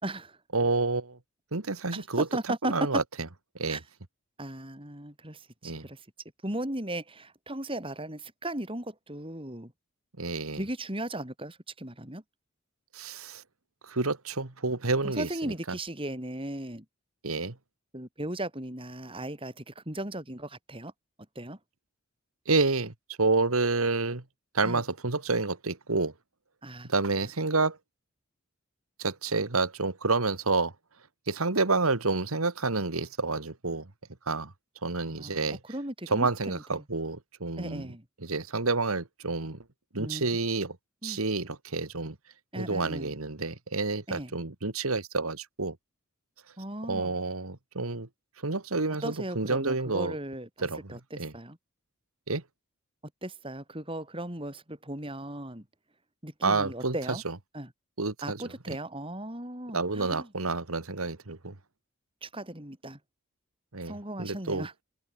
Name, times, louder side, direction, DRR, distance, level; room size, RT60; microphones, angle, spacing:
voice 1, 0.0-0.4 1.9-2.7 3.7-3.8 4.4-6.0 6.4-9.7 10.5-12.2 15.0-16.8 17.9-20.9 21.3-21.6 24.6-24.8 26.6-26.9 35.1-36.8 37.6-38.0 40.0-40.3 41.0-41.2 42.5-43.1 44.1-44.3 46.6-47.1 49.0-51.6 53.2-55.6 56.2-57.2 57.5-57.7 58.2-60.3 62.2-63.0 63.8-64.7, right 1 dB, 25° right, 4.8 m, -37 dB
voice 2, 0.5-1.2 1.5-2.3 2.6-3.0 3.6-3.8 5.6-5.9 10.2-10.6 12.9-13.4 13.9-15.8 17.2-17.6 22.5-24.2 24.5-26.1 26.9-27.8 29.0-30.7 31.3-33.9 34.3-34.5 34.8-35.6 36.1-37.9 38.2-39.6 39.9-40.8 41.0-42.2 42.6-45.8 46.9-48.1 48.4-50.2 50.6-51.3 52.3-52.4 56.4-57.4 58.0-58.4 59.7-61.6 63.7-64.7, right 3 dB, 85° right, 1.9 m, -29 dB
head